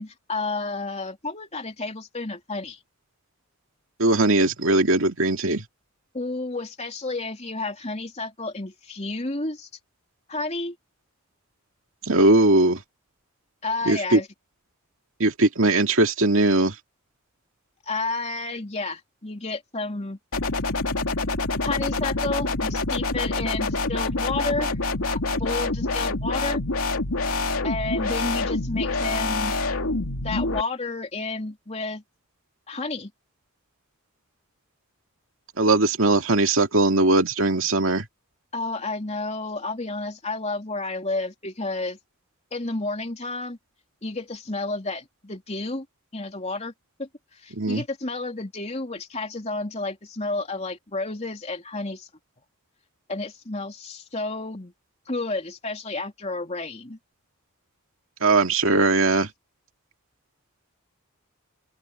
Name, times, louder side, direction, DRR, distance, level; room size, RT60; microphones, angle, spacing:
voice 1, 0.0-2.8 6.1-9.7 10.3-10.7 13.6-14.3 17.9-20.2 21.6-24.8 25.1-26.6 27.6-29.6 30.2-32.0 32.7-33.1 38.5-42.0 42.5-43.6 44.0-45.8 46.1-46.7 47.0-47.1 47.3-52.1 53.1-54.7 55.1-57.0, left 3 dB, 30° left, 3.3 m, -31 dB
voice 2, 4.0-5.6 12.1-12.8 13.9-14.2 15.2-16.7 35.6-38.0 47.6-47.8 58.2-59.3, right 2 dB, 65° right, 2.4 m, -20 dB
sound 1, 20.3-30.6, left 3 dB, 80° left, 2.7 m, -26 dB
open air
head